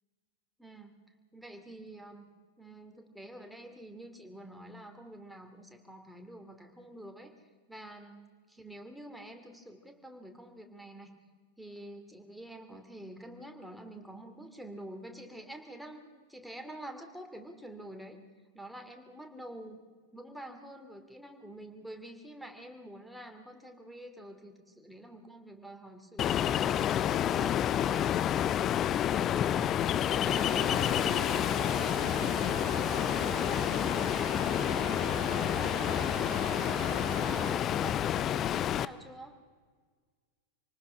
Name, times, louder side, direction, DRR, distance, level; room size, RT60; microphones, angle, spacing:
voice 1, 0.6-1.0 1.3-2.3 2.6-7.3 7.7-8.2 8.6-11.1 11.6-18.2 18.5-19.8 20.1-26.7 27.2-28.2 29.1-31.4 31.7-34.1 34.5-39.3, right 1 dB, ahead, 4 dB, 2.6 m, -47 dB
Ocean, 26.2-38.8, left 10 dB, 30° left, 0.6 m, -29 dB
Stream, 30.3-37.5, right 16 dB, 50° right, 0.7 m, -42 dB
27.5 x 19.0 x 5.6 m, 1.5 s
figure-of-eight pair, 90°, 0 cm